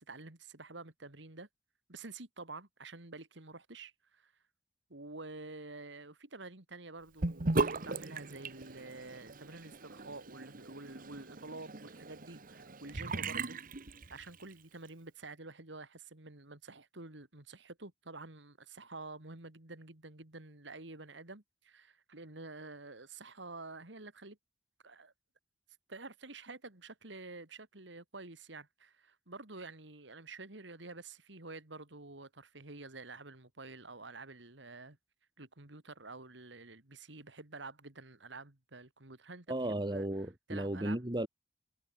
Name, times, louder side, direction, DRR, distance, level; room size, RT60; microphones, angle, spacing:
voice 1, 0.0-1.5 1.9-4.3 4.9-13.6 14.1-24.4 24.8-25.1 25.9-35.0 35.4-40.1 40.5-41.0, right 3 dB, 70° right, 2.7 m, -49 dB
Sink (filling or washing) / Bathtub (filling or washing), 7.2-14.5, right 3 dB, 50° right, 1.4 m, -38 dB
voice 2, 39.5-41.3, right 1 dB, 25° right, 2.1 m, -34 dB
head